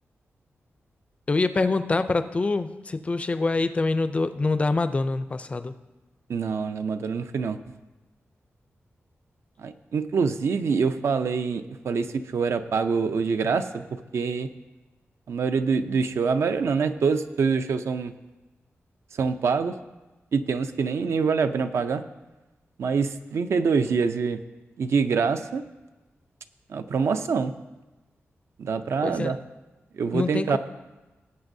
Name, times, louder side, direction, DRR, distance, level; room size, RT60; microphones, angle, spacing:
voice 1, 1.3-5.7 29.0-29.3 30.1-30.6, left 3 dB, 25° left, 11 dB, 0.4 m, -25 dB
voice 2, 6.3-7.6 9.6-14.5 15.3-18.1 19.2-19.7 20.3-22.0 22.8-24.4 24.8-25.6 26.7-27.5 28.6-29.4 30.0-30.6, right 5 dB, 70° right, 9 dB, 0.5 m, -25 dB
19.0 x 8.1 x 2.7 m, 1.1 s
wide cardioid pair, 180°, 5 cm